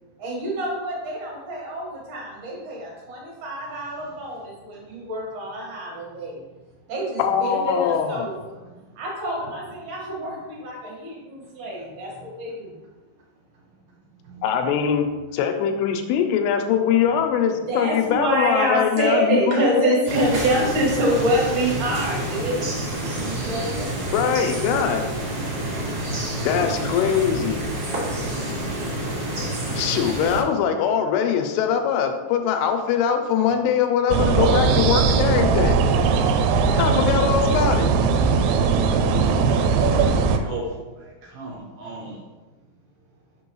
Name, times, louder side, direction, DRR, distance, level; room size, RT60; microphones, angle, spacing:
voice 1, 0.2-6.4 6.9-8.6 9.0-12.7 17.7-24.1, right 1 dB, 55° right, -4 dB, 2.4 m, -26 dB
voice 2, 7.2-8.3 14.4-15.1 15.3-20.2 24.1-25.0 26.4-27.7 29.8-35.8 36.8-37.9, left 8 dB, 80° left, 5 dB, 2.3 m, -22 dB
sound 1, 20.0-30.4, right 1 dB, 40° right, 1.5 m, -28 dB
sound 2, 34.1-40.4, right 5 dB, 90° right, 2.9 m, -19 dB
voice 3, 39.2-40.6 41.0-42.2, right 3 dB, 75° right, -3 dB, 2.2 m, -37 dB
6.1 x 5.9 x 3.1 m, 1.2 s
omnidirectional pair, 5.1 m